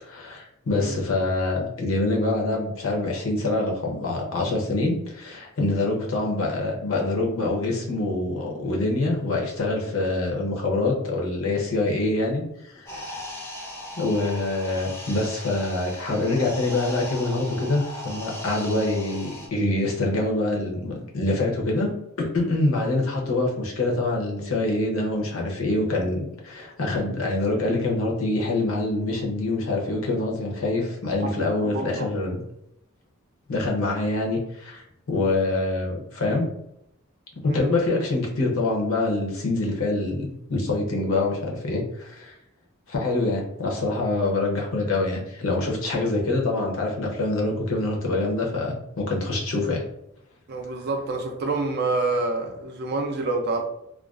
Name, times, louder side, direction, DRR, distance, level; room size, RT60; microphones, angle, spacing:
voice 1, 0.0-13.2 14.0-32.4 33.5-36.5 37.4-42.3 42.9-49.8, left 2 dB, 70° left, 0 dB, 0.6 m, -25 dB
voice 2, 0.7-1.0 31.4-32.1 37.4-37.8 50.5-53.6, right 3 dB, 50° right, 3 dB, 0.4 m, -28 dB
sound 1, 12.9-19.5, left 1 dB, 10° left, 0.4 m, -38 dB
2.4 x 2.2 x 2.3 m, 0.78 s
head